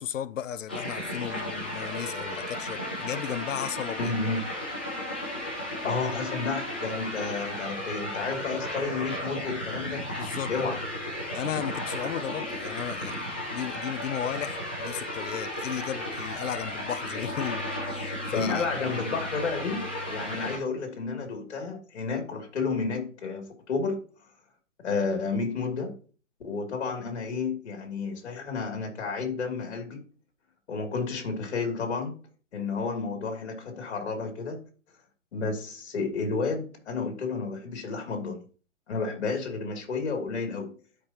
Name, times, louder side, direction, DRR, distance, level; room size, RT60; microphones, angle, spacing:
voice 1, 0.0-4.1 10.2-10.5 11.3-13.2 13.5-18.6, left 10 dB, 80° left, 0.6 m, -35 dB
sound 1, 0.7-20.6, left 1 dB, 10° left, 0.4 m, -34 dB
voice 2, 4.0-4.4 5.8-10.1 10.5-10.8 18.3-24.1 24.8-26.0 26.4-30.0 30.7-32.2 32.5-34.6 35.3-38.4 38.9-40.8, left 4 dB, 60° left, 2.9 m, -31 dB
12.0 x 5.2 x 2.9 m
hypercardioid pair, 160°, 38 cm